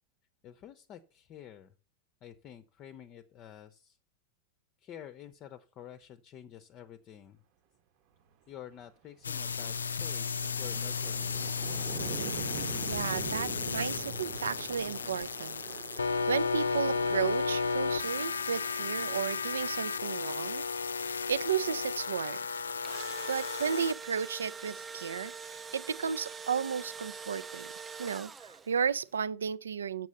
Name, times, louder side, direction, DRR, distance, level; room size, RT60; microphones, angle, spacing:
voice 1, 0.4-1.7 2.2-4.0 4.8-7.4 8.5-11.4, left 10 dB, 35° left, 0.6 m, -49 dB
sound 1, 8.6-8.8 9.2-20.0, right 8 dB, 45° right, 0.9 m, -44 dB
sound 2, 9.2-23.9, left 5 dB, 75° left, 0.4 m, -34 dB
voice 2, 12.8-15.6 15.9-20.6 21.0-22.5 23.3-27.7 28.0-30.1, right 7 dB, 70° right, 0.4 m, -34 dB
Engine / Drill, 22.6-28.8, right 5 dB, 15° right, 0.6 m, -44 dB
7.2 x 6.0 x 6.9 m
figure-of-eight pair, 90°, 0 cm